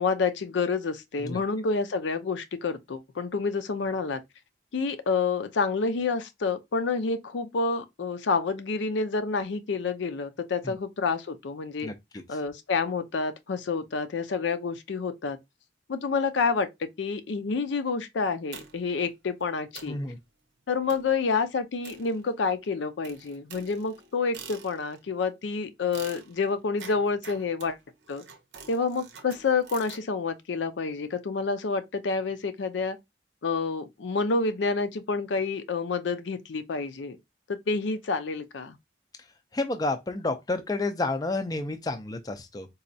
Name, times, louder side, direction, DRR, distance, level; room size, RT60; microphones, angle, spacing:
voice 1, 0.0-4.2 4.7-11.9 12.3-15.4 15.9-20.0 20.7-27.8 28.1-28.2 28.7-33.0 33.4-37.2 37.5-38.8, left 4 dB, 75° left, 0.5 m, -28 dB
sound 1, 18.5-19.0 19.4-19.5 19.7-20.1 20.9-21.2 21.8-22.6 23.0-25.1 25.9-30.1, right 6 dB, 75° right, 0.7 m, -47 dB
voice 2, 19.9-20.2 39.5-42.7, left 2 dB, 20° left, 0.3 m, -30 dB
4.1 x 2.3 x 2.6 m
head